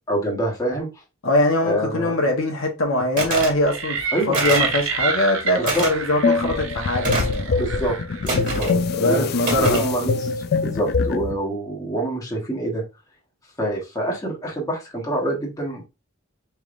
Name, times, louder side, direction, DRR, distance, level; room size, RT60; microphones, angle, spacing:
voice 1, 0.1-1.0 1.6-2.2 4.1-4.4 5.6-5.9 7.6-8.0 8.3-8.7 9.0-9.3 9.6-10.3 10.6-12.8 13.6-15.8, right 1 dB, 15° left, 1.2 m, -26 dB
voice 2, 1.2-4.0 4.3-7.7 8.6-9.9, left 1 dB, 65° left, 1.1 m, -22 dB
sound 1, 3.2-3.6 4.3-4.7 5.7-5.9 7.0-7.4 8.3-8.8 9.4-9.9, right 2 dB, 40° right, 1.8 m, -25 dB
sound 2, 3.7-8.5, right 5 dB, 60° right, 0.7 m, -28 dB
sound 3, 6.2-11.4, left 4 dB, 45° left, 0.4 m, -24 dB
4.8 x 3.4 x 2.5 m
head